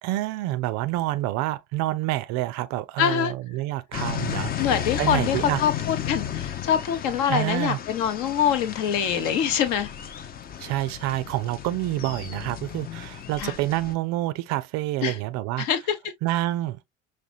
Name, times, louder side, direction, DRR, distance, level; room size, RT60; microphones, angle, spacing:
voice 1, 0.0-4.7 5.0-5.6 7.3-7.8 10.6-15.7 16.2-16.8, right 16 dB, 45° right, 0.4 m, -27 dB
voice 2, 3.0-3.3 4.6-9.9 13.4-13.5 15.0-15.2 15.6-15.8, left 8 dB, 55° left, 0.9 m, -24 dB
sound 1, 3.9-13.9, left 9 dB, 25° left, 0.5 m, -34 dB
5.8 x 2.2 x 2.5 m
figure-of-eight pair, 60°, 39 cm